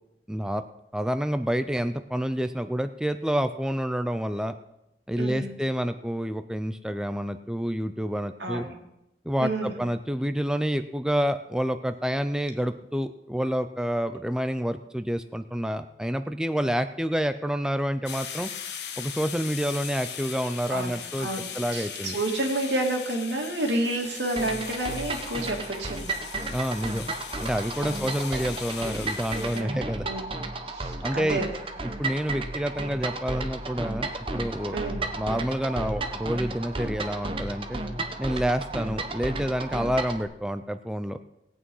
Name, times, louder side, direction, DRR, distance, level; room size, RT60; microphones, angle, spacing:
voice 1, 0.3-0.6 0.9-4.5 5.1-8.7 9.3-18.5 19.0-21.3 21.5-22.2 26.5-27.0 27.4-30.1 31.0-31.4 32.0-34.8 35.2-37.8 38.2-41.2, equal, 5° right, 9 dB, 0.4 m, -28 dB
voice 2, 5.2-5.6 8.4-8.8 9.4-9.9 20.7-26.2 27.8-28.1 29.5-30.3 30.7-31.5 34.7-35.1, right 1 dB, 85° right, 2 dB, 2.5 m, -30 dB
sound 1, 18.1-29.6, left 8 dB, 80° left, 1.2 m, -39 dB
sound 2, 24.4-40.2, right 2 dB, 30° right, 1.0 m, -33 dB
17.5 x 8.6 x 5.5 m, 0.86 s
head